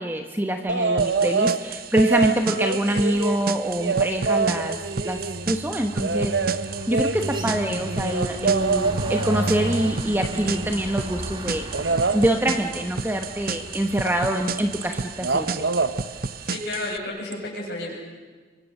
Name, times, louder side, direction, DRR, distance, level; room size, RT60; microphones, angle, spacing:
voice 1, 0.0-4.8 5.0-6.6 6.9-11.7 12.1-15.7, right 1 dB, 10° right, 4 dB, 1.2 m, -25 dB
sound 1, 0.7-1.6 1.9-5.5 6.0-10.9 11.7-12.2 14.1-14.2 14.5-14.9 15.2-15.9 17.3-17.4, right 4 dB, 80° right, 1.1 m, -26 dB
sound 2, 1.0-17.0, right 4 dB, 55° right, 0.8 m, -33 dB
sound 3, 2.7-3.0 3.3-16.4, equal, 30° right, 2.4 m, -36 dB
voice 2, 16.4-18.0, left 2 dB, 70° left, -2 dB, 7.7 m, -32 dB
28.5 x 24.5 x 6.6 m, 1.4 s
head